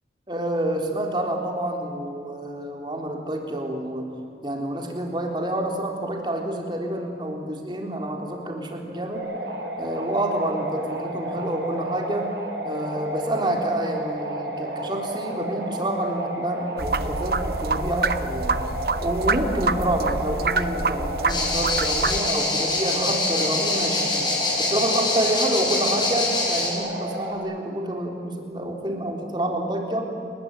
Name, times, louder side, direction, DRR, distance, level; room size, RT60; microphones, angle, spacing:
voice 1, 0.3-4.1 4.4-9.3 9.8-12.3 12.6-18.6 19.0-24.3 24.6-30.1, right 1 dB, 25° right, 2 dB, 3.6 m, -28 dB
sound 1, 9.1-27.3, equal, 75° right, 6.1 m, -32 dB
sound 2, 16.8-22.2, right 3 dB, 55° right, 0.9 m, -26 dB
sound 3, 21.3-26.7, left 3 dB, 25° left, 5.6 m, -25 dB
30.0 x 20.0 x 9.3 m, 2.7 s
head